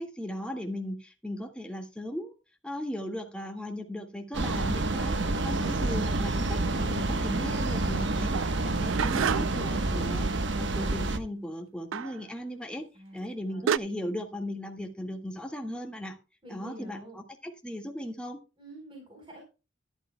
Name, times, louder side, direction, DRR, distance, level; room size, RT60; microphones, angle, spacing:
voice 1, 0.0-2.3 2.6-12.8 13.1-16.2 16.5-18.4, equal, 5° left, 2 dB, 1.7 m, -37 dB
sound 1, 4.3-11.2, right 2 dB, 65° right, 1.1 m, -28 dB
sound 2, 8.3-9.7 11.9-12.2 13.2-13.3 13.7-13.8, right 8 dB, 85° right, 0.4 m, -29 dB
voice 2, 16.4-17.2 18.6-19.4, right 1 dB, 25° right, 0 dB, 4.0 m, -46 dB
14.5 x 11.5 x 2.2 m, 0.29 s
head